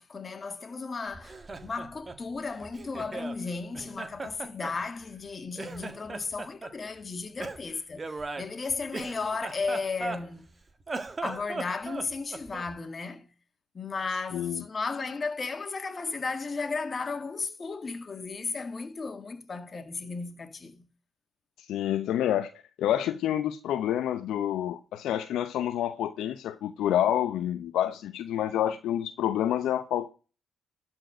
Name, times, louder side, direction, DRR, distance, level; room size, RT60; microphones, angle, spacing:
voice 1, 0.0-10.5 11.2-13.3 13.7-20.9, left 4 dB, 35° left, 1.8 m, -35 dB
Laughter, 1.1-3.4 3.7-5.3 5.6-6.7 7.4-10.5 10.8-12.8, right 3 dB, 30° right, 1.5 m, -38 dB
voice 2, 14.3-14.6 21.7-22.5 22.8-30.1, left 11 dB, 70° left, 0.8 m, -28 dB
12.5 x 4.5 x 6.3 m
hypercardioid pair, 50°, 0 cm